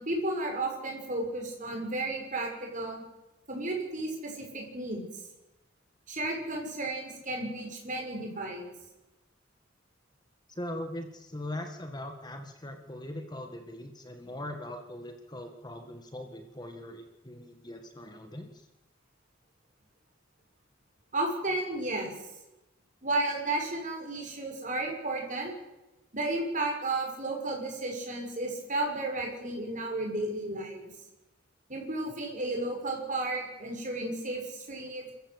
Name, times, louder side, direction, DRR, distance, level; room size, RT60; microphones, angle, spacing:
voice 1, 0.0-3.0 3.5-5.2 6.1-8.7 21.1-22.1 23.0-25.5 26.1-30.8 31.7-35.1, right 2 dB, 40° right, 1 dB, 6.2 m, -33 dB
voice 2, 10.5-18.7, left 1 dB, 20° left, 5 dB, 1.7 m, -41 dB
26.5 x 14.5 x 8.2 m, 1.0 s
head